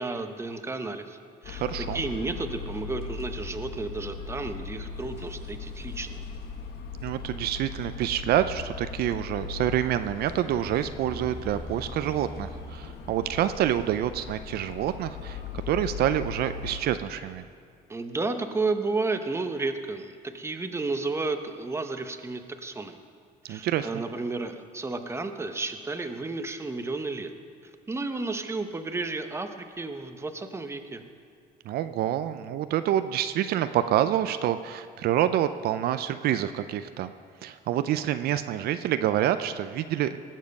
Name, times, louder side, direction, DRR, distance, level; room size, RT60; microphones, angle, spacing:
voice 1, 0.0-6.2 17.9-23.0 23.5-27.3 27.9-31.0, right 3 dB, 15° right, 7 dB, 0.8 m, -32 dB
sound 1, 1.4-16.8, left 5 dB, 70° left, 1.2 m, -38 dB
voice 2, 1.6-2.0 7.0-15.4 15.7-17.4 23.5-24.0 31.7-37.1 37.4-40.2, right 11 dB, 70° right, 11 dB, 0.5 m, -27 dB
19.0 x 7.4 x 5.3 m, 2.2 s
cardioid pair, 110°, 17 cm